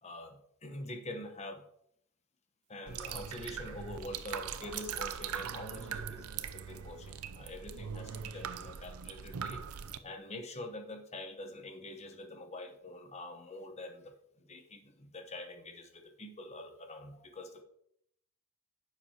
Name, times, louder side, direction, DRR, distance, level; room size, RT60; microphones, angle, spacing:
voice 1, 0.0-1.6 2.7-9.6 10.0-17.6, left 1 dB, 30° left, 6 dB, 1.0 m, -45 dB
sound 1, 2.9-10.0, right 7 dB, 80° right, 0.5 m, -41 dB
9.7 x 7.3 x 2.9 m, 0.72 s
head